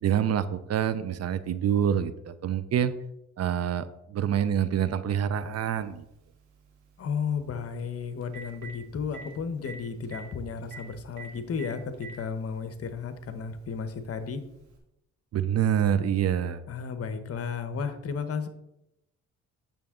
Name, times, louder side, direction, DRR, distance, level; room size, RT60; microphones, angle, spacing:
voice 1, 0.0-2.9 3.4-6.0 15.3-16.6, right 9 dB, 55° right, 14 dB, 0.7 m, -26 dB
Telephone, 5.5-5.6 7.8-7.9 8.2-8.7 9.1-9.2 9.7-9.8 10.0-10.2 10.7-10.8 11.2-11.3 11.6-12.2 13.1-13.2 14.7-14.8, right 4 dB, 85° right, 2.2 m, -42 dB
voice 2, 7.0-14.4 16.7-18.5, left 6 dB, 50° left, 10 dB, 1.1 m, -33 dB
9.0 x 6.7 x 3.7 m, 0.86 s
cardioid pair, 90°, 30 cm